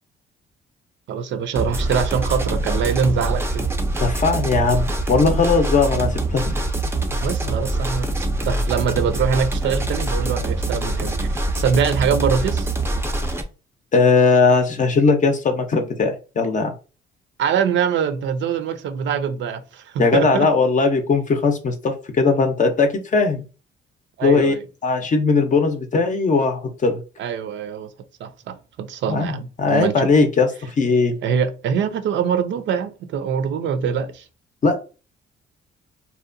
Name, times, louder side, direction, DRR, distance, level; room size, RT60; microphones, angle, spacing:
voice 1, 1.1-3.7 7.2-12.7 17.4-20.5 24.2-24.6 27.2-27.9 28.2-30.1 31.2-34.2, right 7 dB, 65° right, 0.4 m, -23 dB
sound 1, 1.6-13.4, right 2 dB, 10° right, 0.4 m, -24 dB
voice 2, 4.0-6.6 13.9-16.7 20.0-23.4 24.2-24.5 24.8-27.0 29.1-31.1 34.6-34.8, left 4 dB, 40° left, 0.5 m, -19 dB
2.7 x 2.1 x 2.5 m
cardioid pair, 90°, 20 cm